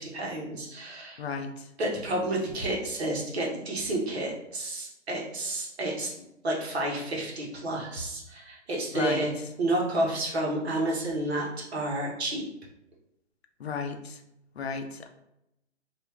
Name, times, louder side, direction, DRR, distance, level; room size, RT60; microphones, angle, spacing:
voice 1, 0.0-1.2 1.8-6.1 6.4-9.3 9.6-12.4, right 1 dB, 60° right, -2 dB, 1.2 m, -30 dB
voice 2, 1.2-1.7 8.9-9.3 13.6-14.2 14.6-15.1, left 5 dB, 60° left, 7 dB, 0.6 m, -34 dB
3.3 x 2.6 x 3.1 m, 0.84 s
hypercardioid pair, 160°, 36 cm